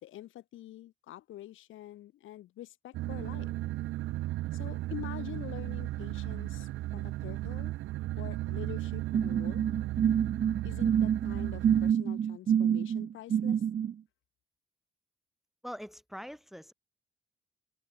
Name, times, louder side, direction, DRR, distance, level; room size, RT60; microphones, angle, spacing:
voice 1, 0.0-3.5 4.5-7.7 8.1-9.6 10.6-13.6, left 14 dB, 85° left, 3.8 m, -46 dB
sound 1, 2.9-11.9, right 16 dB, 90° right, 1.3 m, -35 dB
sound 2, 9.1-13.9, right 8 dB, 35° right, 0.4 m, -27 dB
voice 2, 15.6-16.7, equal, ahead, 1.9 m, -43 dB
cardioid pair, 90°, 20 cm